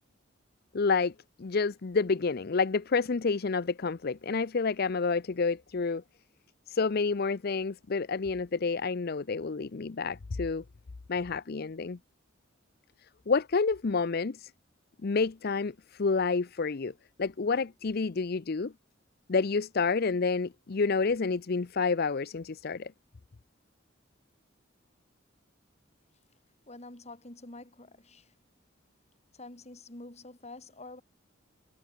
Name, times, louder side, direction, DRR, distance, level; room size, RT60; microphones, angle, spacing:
voice 1, 0.7-1.1 1.4-6.0 6.7-10.6 11.1-12.0 13.3-14.5 15.0-16.9 17.2-18.7 19.3-22.9, left 4 dB, 50° left, 0.6 m, -29 dB
voice 2, 26.7-28.3 29.3-31.0, left 2 dB, 35° left, 2.7 m, -47 dB
head